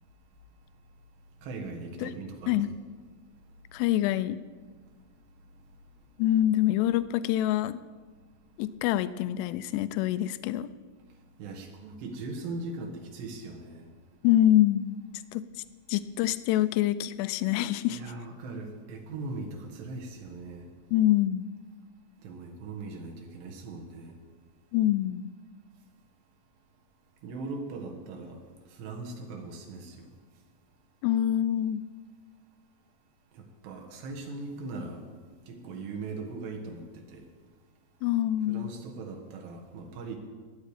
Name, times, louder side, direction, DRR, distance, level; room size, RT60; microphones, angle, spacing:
voice 1, 1.4-2.7 11.4-13.9 17.9-20.7 22.2-24.2 27.2-28.4 28.7-30.1 33.3-35.0 35.5-37.2 38.5-40.2, right 3 dB, 80° right, 2 dB, 3.7 m, -39 dB
voice 2, 3.7-4.4 6.2-7.8 8.6-10.7 14.2-15.0 15.3-15.4 15.9-18.0 20.9-21.4 24.7-25.3 31.0-31.8 38.0-38.7, left 13 dB, 85° left, 14 dB, 2.6 m, -25 dB
19.0 x 9.1 x 5.0 m, 1.5 s
omnidirectional pair, 5.0 m